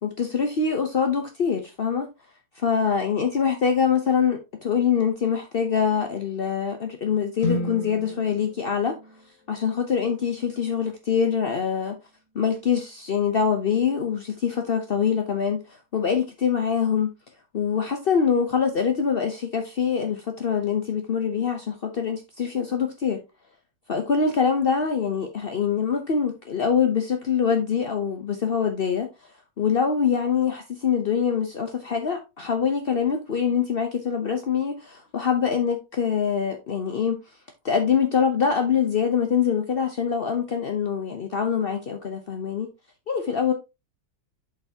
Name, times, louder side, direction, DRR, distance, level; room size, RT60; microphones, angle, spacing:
voice 1, 0.0-2.1 2.6-8.9 9.5-12.0 12.3-15.6 15.9-17.1 17.5-23.2 23.9-29.1 29.6-37.2 37.6-42.7 43.1-43.5, left 7 dB, 70° left, 0.5 m, -24 dB
sound 1, 7.4-11.5, left 2 dB, 45° left, 1.8 m, -34 dB
7.8 x 5.7 x 2.8 m
omnidirectional pair, 2.1 m